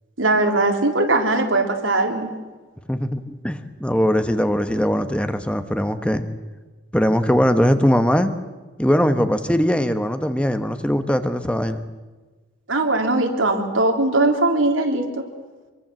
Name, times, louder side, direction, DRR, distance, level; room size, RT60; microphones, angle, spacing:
voice 1, 0.2-2.3 12.7-15.2, right 2 dB, 90° right, 3 dB, 3.6 m, -20 dB
voice 2, 2.9-6.2 6.9-8.3 8.8-11.8, equal, 5° left, 9 dB, 1.0 m, -20 dB
26.0 x 23.0 x 7.6 m, 1.3 s
head